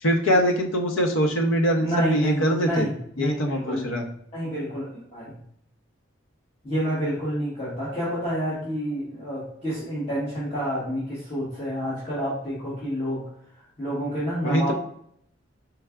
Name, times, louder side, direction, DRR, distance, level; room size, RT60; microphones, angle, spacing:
voice 1, 0.0-2.9 3.2-4.0 14.4-14.7, equal, 80° left, 3 dB, 0.7 m, -23 dB
voice 2, 1.8-4.0 4.3-5.4 6.6-13.2 13.8-14.7, equal, 30° left, -10 dB, 1.2 m, -28 dB
4.4 x 3.4 x 2.4 m, 0.68 s
head